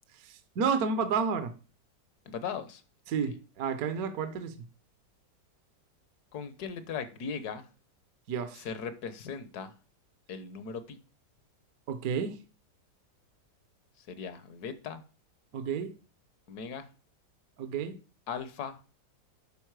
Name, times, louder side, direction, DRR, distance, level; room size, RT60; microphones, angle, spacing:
voice 1, 0.2-1.5 3.1-4.5 8.3-8.6 11.9-12.4 15.5-15.9 17.6-18.0, right 6 dB, 60° right, 1.1 m, -31 dB
voice 2, 2.3-2.8 3.3-3.4 6.3-7.7 8.5-9.7 10.3-11.0 14.0-15.0 16.5-16.9 18.3-18.8, left 6 dB, 65° left, 1.3 m, -38 dB
11.0 x 4.2 x 4.6 m
omnidirectional pair, 1.9 m